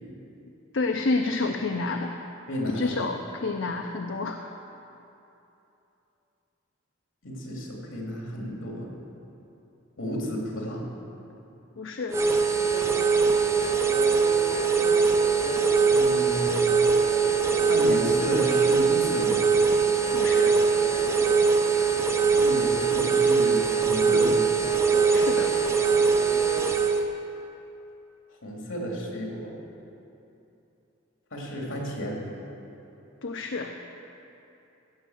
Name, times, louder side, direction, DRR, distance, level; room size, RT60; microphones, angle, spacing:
voice 1, 0.7-2.2 2.7-4.5 11.8-12.2 20.1-20.6 25.1-25.6 33.2-33.8, left 3 dB, 65° left, 4 dB, 0.6 m, -29 dB
voice 2, 2.5-3.0 7.2-8.9 10.0-10.8 15.9-16.8 17.6-19.4 22.3-24.4 28.4-29.5 31.3-32.2, equal, 80° left, -2 dB, 2.8 m, -32 dB
sound 1, 12.1-27.0, right 5 dB, 15° right, 0.6 m, -22 dB
16.5 x 5.6 x 7.9 m, 2.9 s
head